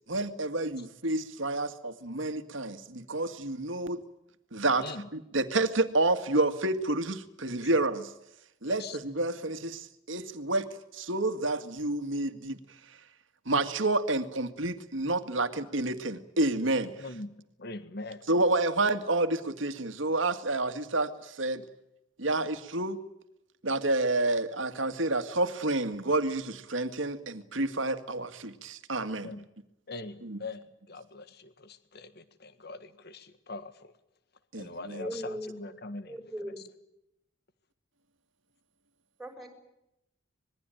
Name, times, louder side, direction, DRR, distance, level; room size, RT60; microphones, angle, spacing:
voice 1, 0.1-4.0 4.5-4.8 5.1-8.1 8.6-10.7 10.9-12.6 13.5-16.9 18.3-21.6 22.2-23.0 23.6-29.3 30.2-30.4 34.5-35.1, right 2 dB, 75° right, 2.0 m, -29 dB
voice 2, 8.7-9.0 17.0-17.3 17.6-18.3 29.2-29.4 29.9-33.9 34.5-36.7, left 3 dB, 55° left, 1.7 m, -42 dB
voice 3, 35.0-35.5 36.1-36.6 39.2-39.5, right 1 dB, ahead, 6.1 m, -38 dB
26.0 x 22.0 x 9.2 m
head